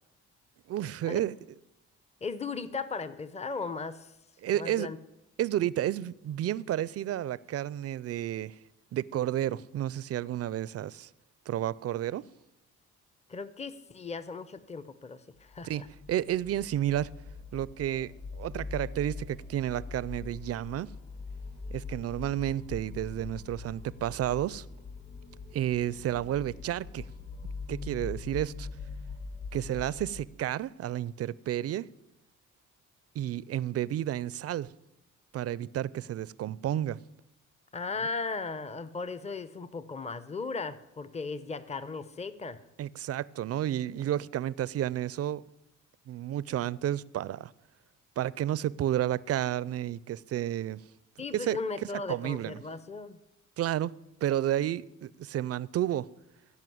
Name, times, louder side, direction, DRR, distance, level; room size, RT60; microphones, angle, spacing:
voice 1, 0.7-1.3 4.4-4.9 5.4-8.5 8.9-11.1 11.5-12.2 15.6-15.8 16.1-17.1 17.5-20.9 21.7-24.6 25.5-27.1 27.7-28.7 29.5-31.9 33.1-34.7 35.3-37.0 42.8-45.4 46.1-47.5 48.2-50.8 51.3-51.6 52.1-52.6 53.6-53.9 54.2-56.1, right 12 dB, 55° right, 0.5 m, -31 dB
voice 2, 2.2-4.1 4.5-5.0 13.3-15.9 37.7-42.6 51.2-53.2, left 4 dB, 20° left, 0.7 m, -37 dB
sound 1, 15.5-30.3, left 4 dB, 40° left, 2.8 m, -42 dB
16.0 x 5.4 x 7.8 m
cardioid pair, 90°, 30 cm